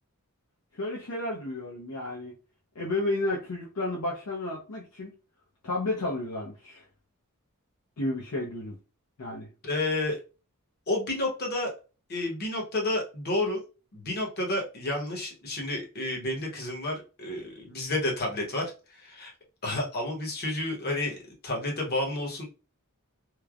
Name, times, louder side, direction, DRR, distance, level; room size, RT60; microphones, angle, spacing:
voice 1, 0.7-2.3 2.7-5.1 5.6-6.8 8.0-8.8 9.2-9.5, left 2 dB, 80° left, 0.7 m, -32 dB
voice 2, 9.6-10.2 10.9-11.7 12.1-13.6 13.9-19.3 19.6-21.2 21.4-22.4, left 2 dB, 45° left, 0.9 m, -30 dB
3.1 x 2.1 x 2.3 m
head